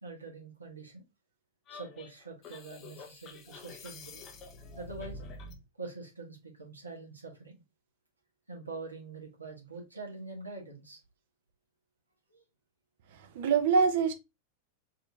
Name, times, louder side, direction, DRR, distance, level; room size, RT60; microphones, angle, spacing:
voice 1, 0.0-1.0 1.7-4.2 4.8-5.2 5.7-7.6 8.5-11.0 12.3-12.4, right 3 dB, 80° right, 1.2 m, -44 dB
sound 1, 1.7-5.6, left 2 dB, 30° left, 0.7 m, -47 dB
voice 2, 13.2-14.1, right 5 dB, 55° right, 0.6 m, -25 dB
4.0 x 2.8 x 2.8 m
figure-of-eight pair, 90°, 0 cm